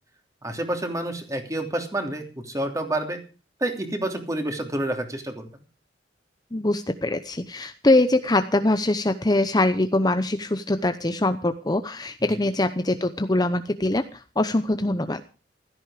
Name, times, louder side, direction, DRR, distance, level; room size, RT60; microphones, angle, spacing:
voice 1, 0.4-3.2 3.6-5.6 12.2-12.4, right 1 dB, 20° right, 4 dB, 3.1 m, -29 dB
voice 2, 6.5-15.2, left 2 dB, 20° left, 9 dB, 0.8 m, -23 dB
16.0 x 14.0 x 5.0 m, 0.35 s
head